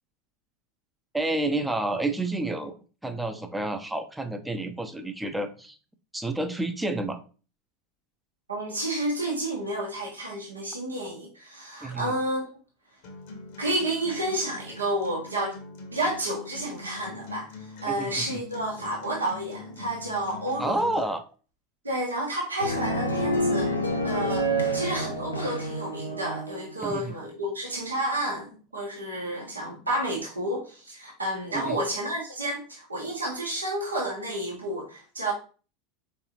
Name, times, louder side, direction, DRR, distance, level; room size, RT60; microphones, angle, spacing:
voice 1, 1.1-2.7 3.0-5.8 6.1-7.2 11.8-12.1 17.9-18.3 20.6-21.2 26.8-27.1 31.5-31.8, right 2 dB, 5° right, 7 dB, 0.5 m, -29 dB
voice 2, 8.5-12.5 13.6-15.5 15.9-20.8 21.8-23.7 24.0-24.5 24.7-35.3, right 1 dB, 85° right, -3 dB, 1.0 m, -30 dB
Acoustic guitar, 13.0-21.0, left 3 dB, 60° left, 1.1 m, -43 dB
sound 1, 22.6-26.8, right 1 dB, 85° left, 0.6 m, -28 dB
4.5 x 3.4 x 2.9 m, 0.37 s
figure-of-eight pair, 80°, 0 cm